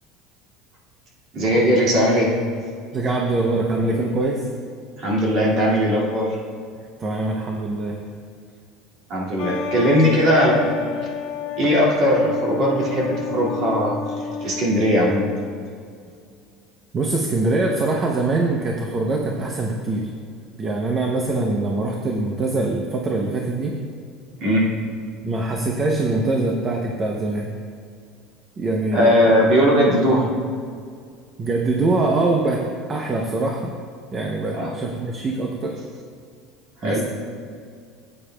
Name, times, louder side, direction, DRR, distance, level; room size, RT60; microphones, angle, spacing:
voice 1, 1.3-2.3 5.0-6.4 9.1-11.1 11.6-14.0 14.4-15.3 24.4-24.7 28.9-30.3 34.6-34.7 36.8-37.0, equal, 40° right, -4 dB, 2.1 m, -19 dB
voice 2, 2.9-4.5 7.0-8.0 16.9-20.1 20.6-23.8 25.2-27.5 28.6-29.2 31.4-33.7 34.1-35.8 36.8-37.0, right 2 dB, 20° right, 1 dB, 0.6 m, -23 dB
sound 1, 9.4-15.7, left 5 dB, 70° left, 1.5 m, -30 dB
15.5 x 8.7 x 2.2 m, 2.2 s
cardioid pair, 170°, 0 cm